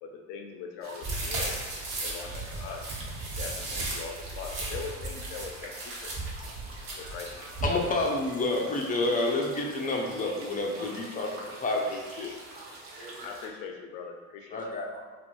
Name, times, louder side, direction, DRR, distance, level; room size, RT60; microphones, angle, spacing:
voice 1, 0.0-3.0 3.3-6.1 7.0-7.5 13.2-14.6, left 5 dB, 70° left, 3 dB, 0.6 m, -41 dB
sound 1, 0.8-13.5, right 2 dB, 35° right, 0.7 m, -47 dB
sound 2, 1.0-7.7, right 2 dB, 55° right, 1.1 m, -35 dB
voice 2, 6.7-7.5 9.5-9.6 10.1-10.4 11.9-13.3 14.9-15.0, right 2 dB, 70° right, -6 dB, 1.3 m, -50 dB
voice 3, 7.6-12.3 14.5-14.9, left 2 dB, 20° left, 0 dB, 0.5 m, -29 dB
2.6 x 2.6 x 3.0 m, 1.5 s
hypercardioid pair, 85°, 41 cm